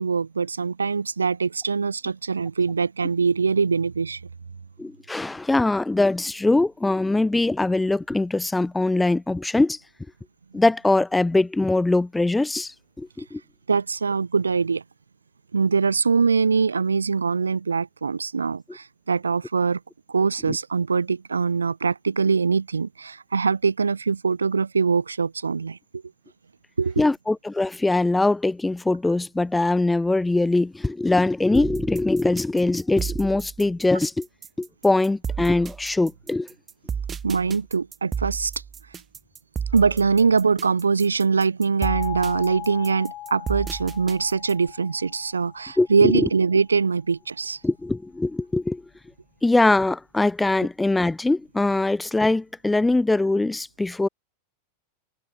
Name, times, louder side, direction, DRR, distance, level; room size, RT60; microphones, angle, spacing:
voice 1, 0.0-4.2 13.7-14.8 15.5-19.8 20.1-26.0 26.8-27.0 37.2-38.5 39.7-47.6, right 5 dB, 75° right, 2.1 m, -23 dB
voice 2, 4.8-9.8 10.5-13.4 20.5-20.6 27.0-34.3 34.6-36.5 45.8-46.3 47.6-48.8 49.4-54.1, left 2 dB, 5° left, 0.6 m, -22 dB
sound 1, 31.5-44.7, right 7 dB, 20° right, 6.4 m, -33 dB
sound 2, 41.8-46.6, left 14 dB, 35° left, 3.8 m, -38 dB
figure-of-eight pair, 90°, 0 cm